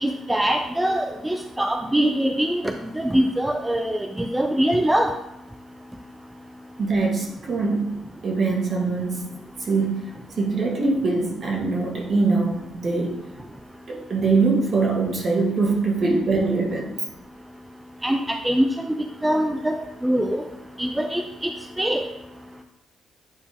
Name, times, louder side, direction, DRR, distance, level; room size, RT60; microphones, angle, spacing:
voice 1, 0.0-5.1 18.0-18.9 19.2-20.4 20.8-21.5 21.8-22.0, right 1 dB, 10° right, 5 dB, 0.5 m, -23 dB
voice 2, 6.8-8.0 8.2-9.2 9.7-13.1 13.9-16.9, right 3 dB, 50° right, -1 dB, 2.0 m, -23 dB
9.3 x 4.3 x 3.5 m, 0.87 s
cardioid pair, 90°, 0 cm